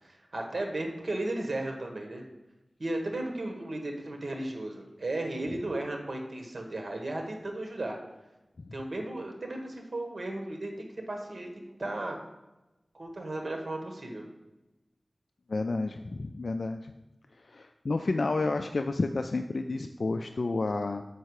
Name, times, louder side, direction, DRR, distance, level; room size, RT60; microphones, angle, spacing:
voice 1, 0.0-2.2 2.8-8.0 8.7-12.2 12.9-14.2, right 2 dB, 65° right, 2 dB, 1.3 m, -35 dB
voice 2, 15.5-16.9 17.5-21.0, left 3 dB, 70° left, 6 dB, 0.3 m, -30 dB
6.6 x 5.4 x 4.7 m, 1.0 s
wide cardioid pair, 70°, 0 cm